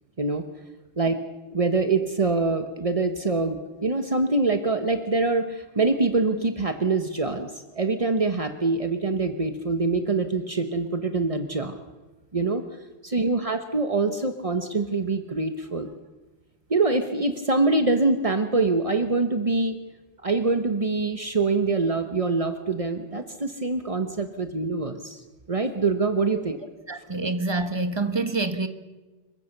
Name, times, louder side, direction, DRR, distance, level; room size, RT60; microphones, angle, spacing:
voice 1, 1.5-11.8 12.3-12.6 13.0-15.9 16.7-19.8 20.2-26.6, right 3 dB, 35° right, 7 dB, 0.6 m, -24 dB
voice 2, 26.9-28.7, right 3 dB, 15° right, 8 dB, 1.0 m, -26 dB
27.0 x 23.5 x 6.7 m, 1.2 s
omnidirectional pair, 2.4 m